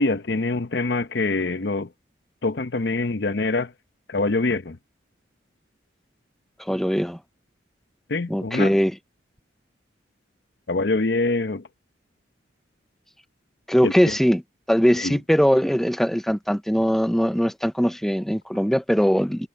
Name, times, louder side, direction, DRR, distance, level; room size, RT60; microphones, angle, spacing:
voice 1, 0.0-1.9 2.4-3.7 4.1-4.8 8.1-8.7 10.7-11.6 13.8-14.1 15.0-15.2, left 3 dB, 60° left, 0.8 m, -24 dB
voice 2, 6.6-7.2 8.3-8.9 13.7-14.4 14.7-19.5, equal, ahead, 0.5 m, -21 dB
head